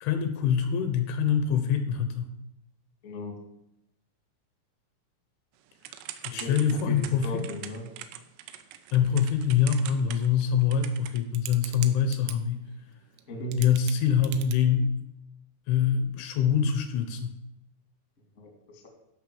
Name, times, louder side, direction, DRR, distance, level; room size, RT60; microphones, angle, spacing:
voice 1, 0.0-2.3 6.2-7.3 8.9-12.6 13.6-14.9 15.7-17.3, left 7 dB, 75° left, 8 dB, 3.0 m, -25 dB
voice 2, 3.0-3.4 6.3-7.9 13.3-13.7 18.4-18.9, equal, 45° left, 1 dB, 1.0 m, -36 dB
Typing / Telephone, 5.8-12.4 13.2-13.3 13.5-14.5, right 12 dB, 85° right, 3.4 m, -41 dB
13.0 x 5.5 x 6.9 m, 0.84 s
omnidirectional pair, 5.9 m